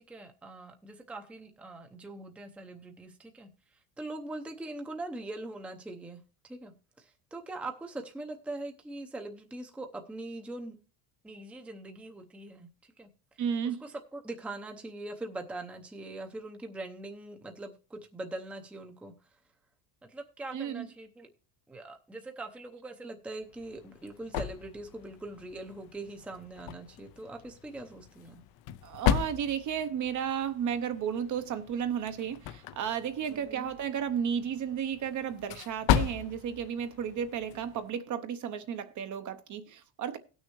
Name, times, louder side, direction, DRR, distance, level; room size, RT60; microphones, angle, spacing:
voice 1, 0.0-10.8 11.2-13.1 13.6-19.1 20.0-21.3 21.7-28.4 33.3-33.7, right 2 dB, 5° right, 0.6 m, -42 dB
voice 2, 13.4-13.8 20.5-20.9 28.8-40.2, right 8 dB, 40° right, 0.7 m, -33 dB
sound 1, 23.4-37.9, left 10 dB, 50° left, 0.6 m, -36 dB
18.0 x 6.4 x 3.0 m
cardioid pair, 145°, 49 cm